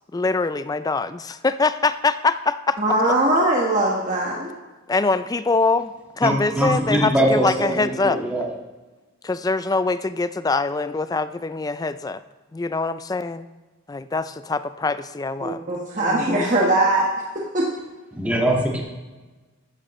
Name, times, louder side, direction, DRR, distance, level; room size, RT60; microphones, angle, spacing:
voice 1, 0.1-2.8 4.9-8.2 9.2-12.2 12.5-13.5 13.9-15.6 16.0-16.5, left 3 dB, 20° left, 12 dB, 0.4 m, -23 dB
voice 2, 2.8-4.5 15.4-17.1 17.5-17.7, right 1 dB, 40° right, -3 dB, 1.3 m, -20 dB
voice 3, 6.2-8.5 18.1-18.8, right 1 dB, 5° right, -2 dB, 1.7 m, -22 dB
14.5 x 11.0 x 3.1 m, 1.2 s
head